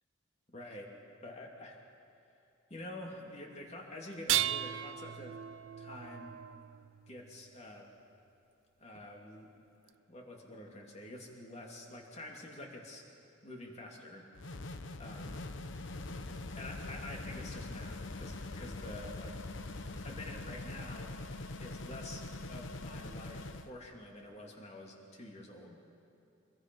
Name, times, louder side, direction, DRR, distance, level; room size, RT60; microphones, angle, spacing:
voice 1, 0.5-0.9 1.2-1.8 2.7-5.4 5.8-6.4 7.1-7.9 8.8-9.5 10.1-13.0 13.4-14.3 15.0-15.4 16.5-19.4 20.0-21.2 21.6-25.8, left 1 dB, 35° left, 0 dB, 2.8 m, -48 dB
sound 1, 4.1-7.4 9.0-9.1 9.9-10.0, right 12 dB, 75° right, 0.4 m, -36 dB
sound 2, 14.3-23.7, left 2 dB, 70° left, 1.0 m, -43 dB
25.5 x 22.0 x 5.4 m, 2.8 s
head